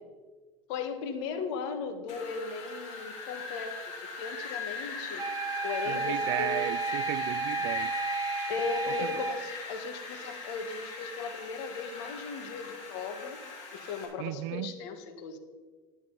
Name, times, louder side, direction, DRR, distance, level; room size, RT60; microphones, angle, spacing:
voice 1, 0.7-3.7 4.0-5.3 5.6-6.6 8.5-13.4 13.7-15.4, left 5 dB, 75° left, 7 dB, 1.5 m, -37 dB
Wind, 2.1-14.1, left 4 dB, 50° left, 3.6 m, -40 dB
sound 1, 5.2-9.4, right 4 dB, 25° right, 1.6 m, -32 dB
voice 2, 5.9-7.9 9.0-9.3 14.2-14.7, right 18 dB, 70° right, 21 dB, 0.4 m, -35 dB
11.0 x 11.0 x 4.0 m, 1.4 s
supercardioid pair, 105°, 15 cm